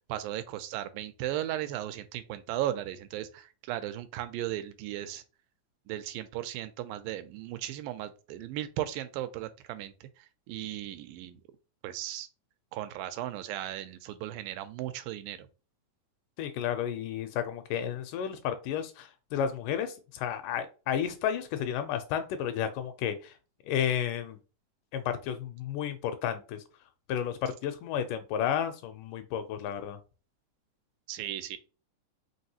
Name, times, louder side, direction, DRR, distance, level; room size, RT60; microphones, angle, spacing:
voice 1, 0.1-5.2 5.9-11.4 11.8-12.3 12.7-15.5 31.1-31.6, right 13 dB, 85° right, 2.3 m, -36 dB
voice 2, 16.4-23.3 23.7-24.4 24.9-26.6 27.1-30.0, left 9 dB, 80° left, 2.0 m, -32 dB
5.2 x 3.2 x 2.8 m
omnidirectional pair, 4.0 m